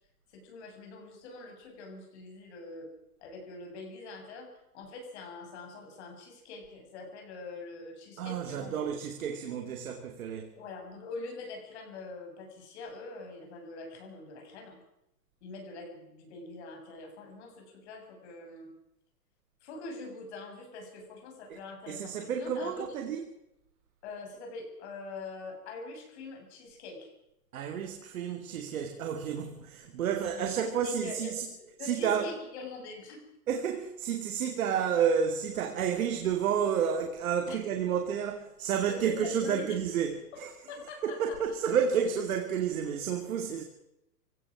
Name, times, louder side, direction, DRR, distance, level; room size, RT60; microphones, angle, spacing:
voice 1, 0.3-2.9 3.2-4.5 4.7-8.8 10.5-14.8 15.4-18.7 19.6-23.1 24.0-27.1 30.3-31.3 31.8-33.2 37.5-37.6 38.9-39.8 40.7-41.4 42.1-42.2, left 3 dB, 45° left, 6.6 m, -44 dB
voice 2, 8.2-10.5 21.9-23.2 27.5-31.5 31.8-32.3 33.5-40.5 41.0-43.6, right 7 dB, 60° right, 2.4 m, -30 dB
25.5 x 17.0 x 6.1 m
hypercardioid pair, 165°, 48 cm